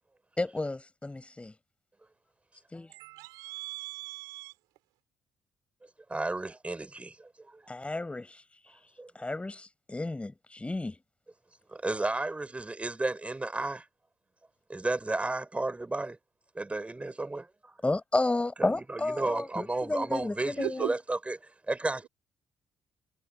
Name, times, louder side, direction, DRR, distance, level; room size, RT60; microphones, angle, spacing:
voice 1, 0.4-1.5 2.7-2.9 7.7-8.4 9.2-11.0 17.8-20.9, left 2 dB, 20° left, 6.9 m, -32 dB
voice 2, 2.9-4.5 20.6-20.9, right 20 dB, 75° right, 4.8 m, -38 dB
voice 3, 6.1-7.7 9.0-9.1 11.7-13.8 14.7-16.2 16.5-17.7 18.6-22.1, right 2 dB, 20° right, 5.9 m, -33 dB
hypercardioid pair, 45°, 6 cm